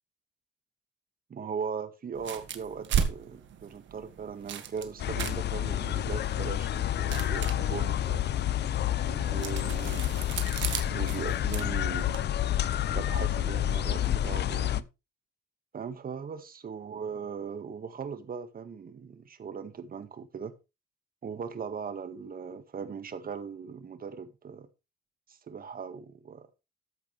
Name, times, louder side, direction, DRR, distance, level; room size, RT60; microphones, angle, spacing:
voice 1, 1.3-8.2 9.0-10.1 10.9-12.0 12.9-14.9 15.7-20.5 21.2-24.7 25.3-26.5, right 6 dB, 50° right, 1.7 m, -39 dB
sound 1, 2.1-12.3, right 8 dB, 70° right, 1.7 m, -37 dB
sound 2, 5.0-14.8, left 12 dB, 60° left, 0.6 m, -29 dB
13.0 x 8.2 x 3.3 m
cardioid pair, 90°, 20 cm